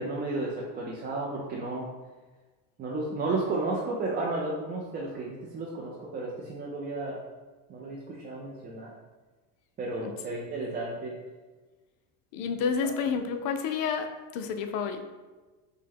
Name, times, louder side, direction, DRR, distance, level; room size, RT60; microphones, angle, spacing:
voice 1, 0.0-1.9 2.8-7.2 7.7-8.9 9.8-11.1 12.8-12.9, right 2 dB, 20° right, -4 dB, 0.4 m, -33 dB
voice 2, 12.3-14.1 14.3-15.0, left 6 dB, 50° left, 7 dB, 0.5 m, -29 dB
5.3 x 2.1 x 3.5 m, 1.2 s
supercardioid pair, 125°, 46 cm